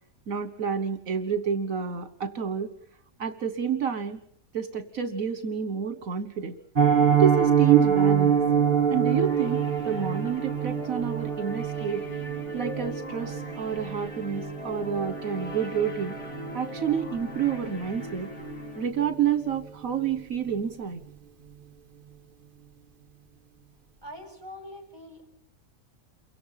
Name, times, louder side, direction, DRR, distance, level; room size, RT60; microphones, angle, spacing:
voice 1, 0.3-2.7 3.2-4.2 4.5-6.6 7.1-8.4 8.9-12.0 12.5-16.2 16.5-18.3 18.8-21.0, right 7 dB, 75° right, 10 dB, 1.7 m, -29 dB
Piano, 6.7-17.6 17.9-18.1 18.5-18.6 19.0-19.2 19.5-19.6, right 8 dB, 40° right, 1.5 m, -26 dB
sound 1, 7.8-18.9, left 2 dB, 55° left, 3.2 m, -41 dB
voice 2, 24.0-25.2, left 1 dB, 15° right, 4 dB, 7.7 m, -43 dB
28.5 x 24.0 x 5.8 m, 0.63 s
omnidirectional pair, 1.4 m